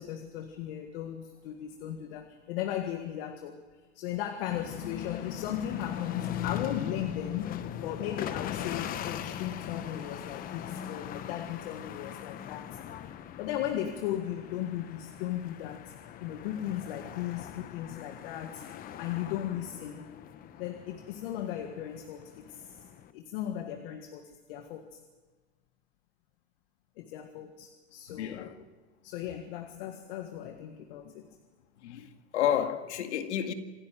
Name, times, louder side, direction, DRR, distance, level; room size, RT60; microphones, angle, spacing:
voice 1, 0.0-3.6 4.0-12.8 13.4-15.9 16.2-18.7 19.0-20.0 20.6-22.8 23.1-25.0 27.0-28.5 29.0-31.3, left 11 dB, 55° left, 1.8 m, -37 dB
sound 1, 4.5-23.1, left 10 dB, 25° left, 1.0 m, -40 dB
voice 2, 28.1-28.6 30.9-31.1 31.8-33.5, left 10 dB, 80° left, 2.0 m, -31 dB
26.5 x 13.0 x 9.2 m
supercardioid pair, 145°, 34 cm